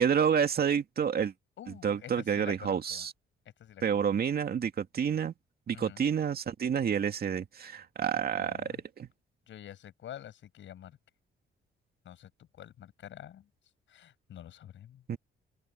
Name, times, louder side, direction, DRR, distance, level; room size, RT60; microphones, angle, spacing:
voice 1, 0.0-1.3 1.7-3.1 3.8-5.3 5.7-9.1 15.1-15.2, right 7 dB, 50° right, 2.4 m, -29 dB
voice 2, 1.6-3.1 3.6-4.0 5.7-6.0 8.3-8.8 9.5-11.0 12.1-12.3 12.6-13.5 13.9-15.0, left 11 dB, 70° left, 7.2 m, -47 dB
open air
cardioid pair, 90°, 20 cm